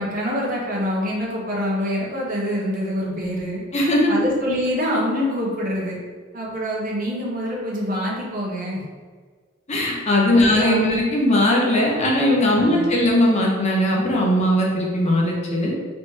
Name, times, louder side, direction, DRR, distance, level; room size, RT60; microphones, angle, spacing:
voice 1, 0.0-3.6 4.1-6.0 6.3-8.8 10.3-11.0 12.5-13.0, equal, 45° right, -4 dB, 1.1 m, -25 dB
voice 2, 3.7-4.1 9.7-15.7, left 1 dB, 35° left, -2 dB, 0.7 m, -19 dB
4.0 x 3.2 x 3.2 m, 1.5 s
head